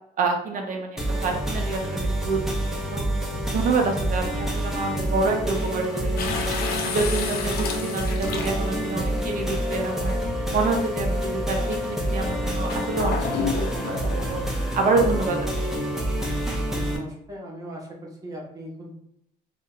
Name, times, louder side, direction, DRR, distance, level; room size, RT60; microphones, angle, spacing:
voice 1, 0.2-3.0 3.5-6.5 6.8-10.2 10.5-14.4 14.7-15.5, right 3 dB, 50° right, 2 dB, 0.7 m, -27 dB
sound 1, 1.0-17.0, right 1 dB, 5° right, 0.6 m, -27 dB
sound 2, 6.2-8.9 9.8-9.9 12.7-14.3, left 6 dB, 65° left, 0.5 m, -31 dB
voice 2, 16.7-18.9, equal, 20° right, -2 dB, 0.9 m, -39 dB
2.6 x 2.1 x 3.7 m, 0.77 s
cardioid pair, 110°, 17 cm